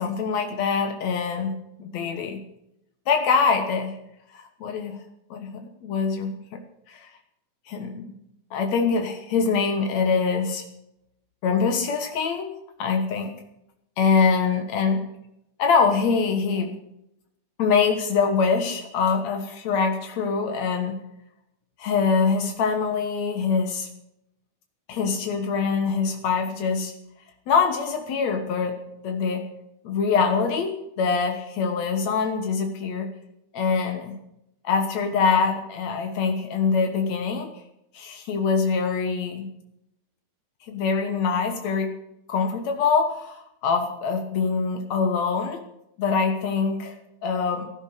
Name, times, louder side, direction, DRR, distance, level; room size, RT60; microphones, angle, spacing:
voice 1, 0.0-1.5 1.8-2.4 3.1-4.0 4.3-5.0 5.3-6.6 6.9-7.1 7.7-8.1 8.5-10.6 11.4-12.5 12.8-13.3 14.0-15.0 15.6-16.7 17.6-21.0 21.8-23.9 24.9-26.9 27.5-28.8 29.0-29.4 29.8-33.1 33.5-34.1 34.6-37.5 37.9-39.5 40.7-41.9 42.3-45.6 46.0-46.9 47.2-47.7, left 5 dB, 85° left, 5 dB, 1.5 m, -24 dB
15.5 x 12.0 x 6.6 m, 0.81 s
omnidirectional pair, 5.3 m